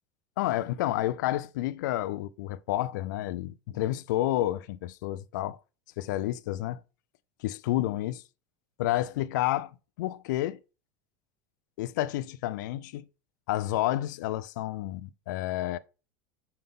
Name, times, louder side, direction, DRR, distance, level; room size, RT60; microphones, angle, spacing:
voice 1, 0.4-5.6 6.0-6.8 7.4-8.2 8.8-9.7 10.0-10.6 11.8-13.0 13.5-15.8, left 14 dB, 80° left, 0.4 m, -30 dB
5.7 x 5.4 x 3.6 m
supercardioid pair, 175°, 10 cm